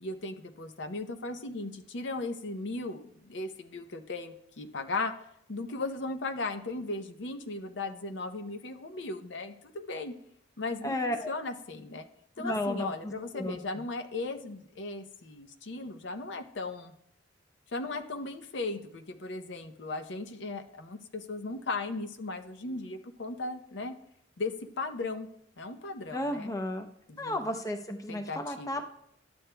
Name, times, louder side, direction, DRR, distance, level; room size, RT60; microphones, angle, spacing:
voice 1, 0.0-5.1 5.5-10.1 10.6-12.0 12.4-16.9 17.7-23.9 24.4-25.3 25.6-26.5 27.1-27.4 28.1-28.7, left 3 dB, 65° left, 7 dB, 0.6 m, -37 dB
voice 2, 10.8-11.3 12.4-13.6 26.1-26.9 27.2-28.8, left 1 dB, 20° left, 5 dB, 0.6 m, -33 dB
12.0 x 8.5 x 2.2 m, 0.72 s
head